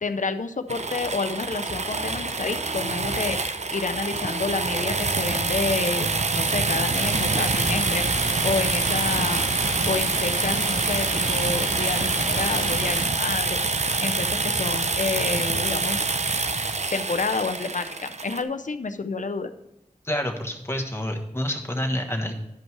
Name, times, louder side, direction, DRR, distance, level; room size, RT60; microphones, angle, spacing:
voice 1, 0.0-3.4 3.7-8.1 8.4-9.6 9.9-13.6 14.0-16.1 16.9-19.5, left 4 dB, 70° left, 9 dB, 0.6 m, -29 dB
sound 1, 0.7-18.4, right 3 dB, 55° right, 0.6 m, -26 dB
sound 2, 6.9-13.1, right 1 dB, 75° right, 1.8 m, -33 dB
voice 2, 20.0-22.3, left 1 dB, 20° left, 2 dB, 1.4 m, -28 dB
11.0 x 5.3 x 4.7 m, 0.90 s
wide cardioid pair, 60°, 13 cm